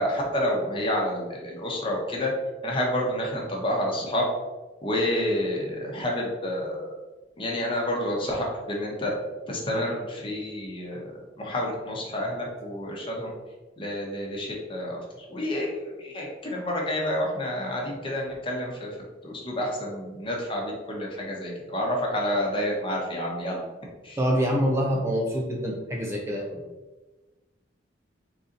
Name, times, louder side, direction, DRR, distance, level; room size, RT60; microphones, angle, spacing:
voice 1, 0.0-2.3 2.6-4.3 4.8-6.9 7.4-9.1 9.5-11.0 11.4-13.3 13.8-15.7 16.0-18.9 19.2-23.7 24.0-24.2, left 1 dB, 30° left, -2 dB, 0.9 m, -29 dB
voice 2, 24.2-26.6, equal, 15° right, -2 dB, 0.5 m, -26 dB
4.0 x 2.8 x 3.8 m, 1.2 s
head